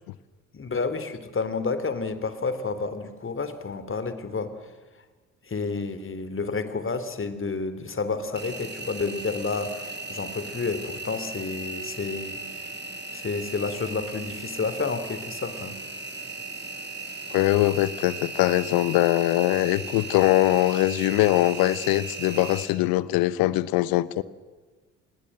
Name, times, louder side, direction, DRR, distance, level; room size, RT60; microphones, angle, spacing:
voice 1, 0.5-4.5 5.5-12.7 13.1-15.8, left 4 dB, 35° left, 3.3 m, -30 dB
Engine, 8.4-22.7, right 3 dB, 30° right, 6.8 m, -37 dB
voice 2, 17.3-24.2, left 16 dB, 65° left, 1.1 m, -22 dB
26.5 x 20.5 x 7.7 m
hypercardioid pair, 50°, 37 cm